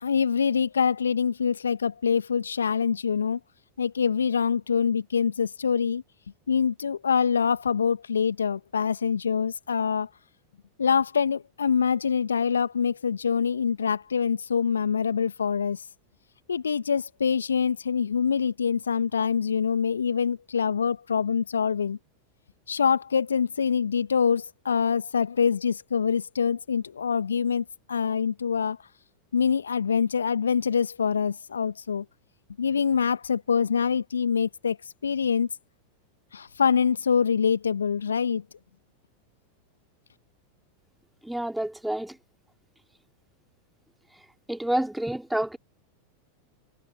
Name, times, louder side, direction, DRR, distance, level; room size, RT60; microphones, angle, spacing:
voice 1, 0.0-3.4 3.8-6.0 6.5-10.1 10.8-15.9 16.5-22.0 22.7-28.8 29.3-32.0 32.6-34.8 35.0-35.5 36.3-38.4, left 6 dB, 75° left, 1.7 m, -25 dB
voice 2, 41.2-42.2 44.5-45.6, right 1 dB, 5° right, 2.9 m, -28 dB
figure-of-eight pair, 90°, 0 cm